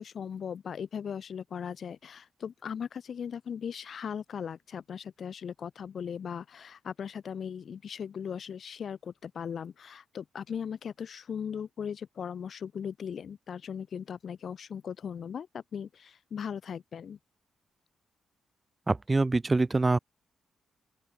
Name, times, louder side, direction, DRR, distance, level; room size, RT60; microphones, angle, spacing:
voice 1, 0.0-17.2, left 7 dB, 60° left, 2.4 m, -38 dB
voice 2, 18.9-20.0, right 3 dB, 25° right, 0.4 m, -25 dB
open air
cardioid pair, 80°, 0 cm